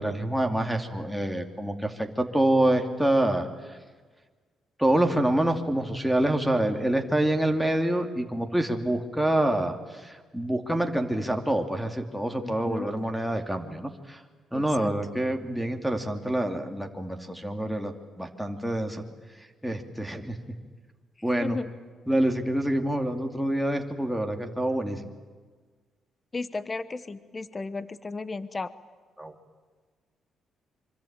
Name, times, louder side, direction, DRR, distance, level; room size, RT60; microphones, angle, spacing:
voice 1, 0.0-3.8 4.8-14.2 14.5-19.0 19.4-20.4 21.2-21.6 22.1-25.1 29.2-29.3, right 1 dB, ahead, 3 dB, 2.7 m, -27 dB
voice 2, 12.4-12.9 14.5-14.9 21.4-21.7 26.3-28.7, left 3 dB, 25° left, 14 dB, 1.1 m, -34 dB
25.5 x 25.0 x 9.0 m, 1.4 s
cardioid pair, 90°, 0 cm